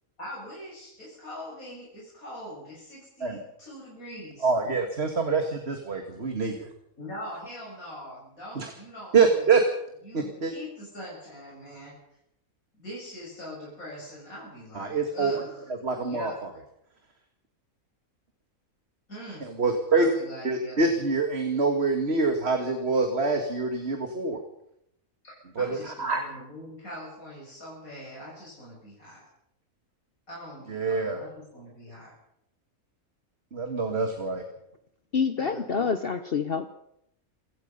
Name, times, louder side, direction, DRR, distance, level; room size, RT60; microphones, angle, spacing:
voice 1, 0.2-4.5 7.0-9.5 10.0-11.9 12.7-16.6 19.1-19.4 19.9-20.8 25.2-29.2 30.3-32.1 35.4-35.8, equal, 80° left, -6 dB, 8.3 m, -42 dB
voice 2, 4.4-6.7 8.6-8.7 9.1-9.6 10.1-10.5 14.8-15.3 15.8-16.3 19.6-20.1 20.4-24.4 25.6-26.2 30.7-31.2 33.5-34.4, right 4 dB, 50° right, 5 dB, 2.2 m, -25 dB
voice 3, 35.1-36.7, left 5 dB, 45° left, 10 dB, 1.1 m, -27 dB
28.0 x 17.0 x 5.5 m, 0.77 s
omnidirectional pair, 1.5 m